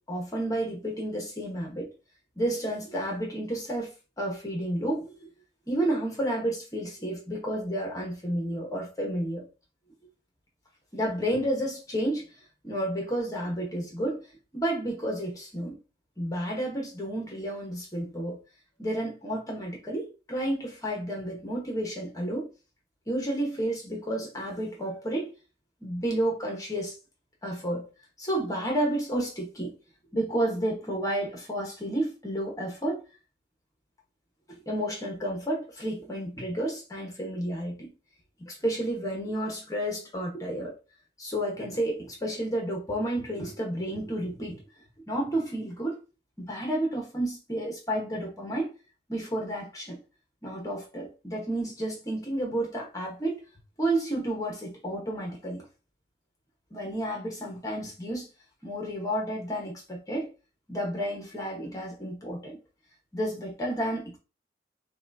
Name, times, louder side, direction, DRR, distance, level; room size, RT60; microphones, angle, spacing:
voice 1, 0.0-1.9 2.4-3.9 4.2-5.3 5.7-9.5 10.9-12.2 12.6-14.2 14.5-15.8 16.2-18.4 18.8-22.5 23.1-25.3 25.8-26.9 27.4-27.9 28.2-29.7 30.1-33.0 34.7-37.9 38.4-40.7 41.2-44.6 45.1-46.0 46.4-48.7 49.1-50.0 50.4-53.4 53.8-55.6 56.7-58.3 58.6-60.3 60.7-62.6 63.1-64.2, right 1 dB, 20° left, 1.1 m, -31 dB
5.8 x 2.4 x 2.6 m
head